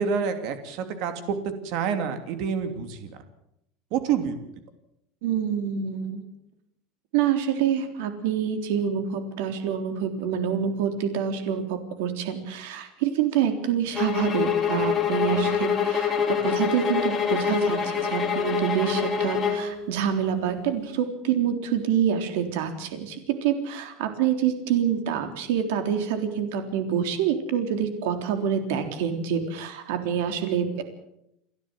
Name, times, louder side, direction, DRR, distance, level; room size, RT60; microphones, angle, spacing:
voice 1, 0.0-1.4 1.6-3.1 3.9-4.4 15.3-15.4, right 7 dB, 50° right, 8 dB, 2.7 m, -28 dB
voice 2, 5.2-6.2 7.1-30.8, right 8 dB, 75° right, 7 dB, 3.6 m, -26 dB
sound 1, 13.9-19.7, left 7 dB, 20° left, 3.0 m, -25 dB
29.5 x 12.5 x 7.8 m, 0.78 s
cardioid pair, 170°, 0 cm